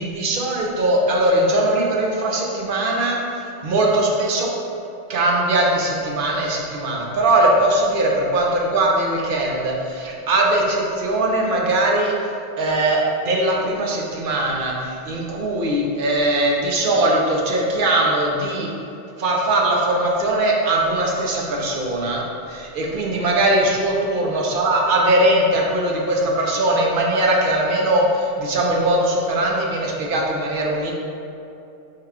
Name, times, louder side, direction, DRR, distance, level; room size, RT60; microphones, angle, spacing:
voice 1, 0.0-3.2 3.6-4.5 5.1-12.1 12.6-18.7 19.2-30.9, right 1 dB, 55° right, -2 dB, 0.8 m, -20 dB
4.7 x 2.2 x 4.8 m, 2.7 s
omnidirectional pair, 1.2 m